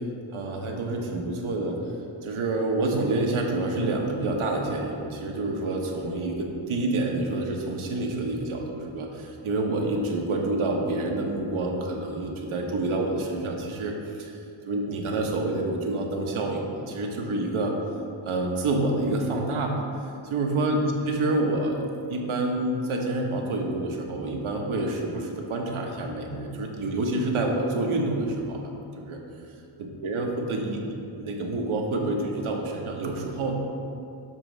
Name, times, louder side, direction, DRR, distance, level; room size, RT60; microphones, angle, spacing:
voice 1, 0.3-1.8 2.2-14.4 14.7-17.7 18.2-19.7 20.3-29.2 29.8-30.8 31.1-33.6, right 2 dB, 75° right, 1 dB, 1.1 m, -28 dB
7.3 x 3.0 x 6.0 m, 2.5 s
cardioid pair, 85°, 50 cm